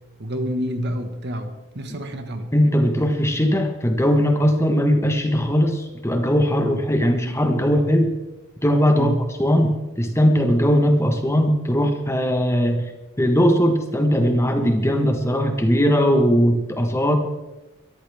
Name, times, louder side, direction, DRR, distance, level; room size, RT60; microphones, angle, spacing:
voice 1, 0.2-2.5 8.9-9.2, equal, 50° right, 7 dB, 1.6 m, -28 dB
voice 2, 2.5-8.1 8.6-9.1 9.4-12.9 13.2-17.2, equal, 10° left, 5 dB, 1.3 m, -19 dB
23.0 x 14.0 x 3.6 m, 1.0 s
head